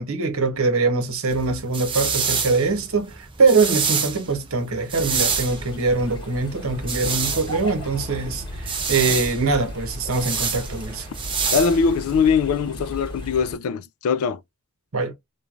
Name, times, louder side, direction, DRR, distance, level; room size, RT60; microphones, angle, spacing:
voice 1, 0.0-11.1 14.9-15.1, right 3 dB, 70° right, 0.9 m, -23 dB
sound 1, 1.3-12.3, right 6 dB, 25° right, 0.5 m, -28 dB
sound 2, 4.9-13.6, equal, 20° left, 1.0 m, -36 dB
voice 2, 11.5-14.4, left 5 dB, 75° left, 0.3 m, -21 dB
3.1 x 2.3 x 2.4 m
head